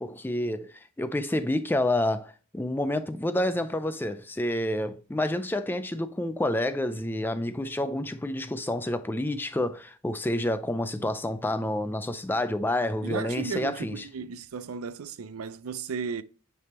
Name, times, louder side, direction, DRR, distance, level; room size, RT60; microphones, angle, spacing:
voice 1, 0.0-14.0, left 1 dB, 10° left, 0.3 m, -29 dB
voice 2, 13.0-16.2, right 5 dB, 85° right, 0.5 m, -35 dB
9.6 x 3.4 x 2.9 m
head